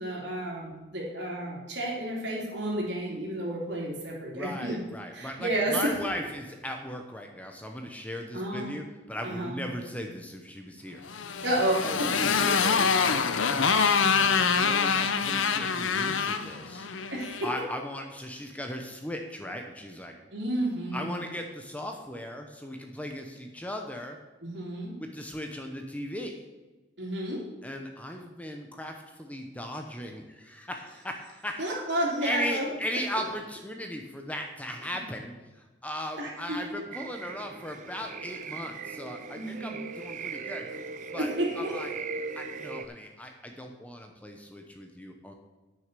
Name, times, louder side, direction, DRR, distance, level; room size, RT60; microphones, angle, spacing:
voice 1, 0.0-4.8 5.1-5.9 8.3-8.7 9.2-9.6 11.4-12.1 12.8-12.9 17.1-17.5 20.3-21.1 24.4-24.9 27.0-27.4 31.6-32.7 34.8-35.0 36.2-36.8 39.4-39.8 41.2-41.7, right 1 dB, 65° right, -3 dB, 3.1 m, -31 dB
voice 2, 4.3-11.0 11.8-13.2 14.1-16.9 17.4-20.1 20.9-24.2 25.0-26.3 27.6-31.7 32.2-40.7 41.1-41.3 41.6-41.9 42.4-45.3, left 1 dB, 5° left, 3 dB, 0.8 m, -37 dB
Motorcycle, 11.1-17.5, left 5 dB, 85° left, 0.7 m, -25 dB
sound 1, 36.9-42.9, right 4 dB, 40° right, 0.6 m, -39 dB
9.2 x 6.5 x 6.8 m, 1.2 s
head